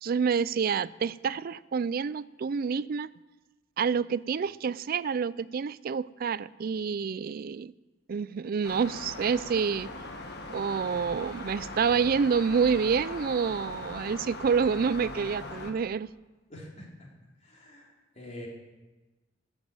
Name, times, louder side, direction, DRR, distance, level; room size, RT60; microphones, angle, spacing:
voice 1, 0.0-3.1 3.8-7.7 8.1-9.9 10.5-16.1, right 6 dB, 50° right, 0.4 m, -28 dB
sound 1, 8.6-15.7, left 2 dB, 60° left, 1.6 m, -40 dB
voice 2, 16.5-16.9 17.4-18.5, left 1 dB, 40° left, 3.4 m, -45 dB
12.5 x 8.1 x 7.2 m
head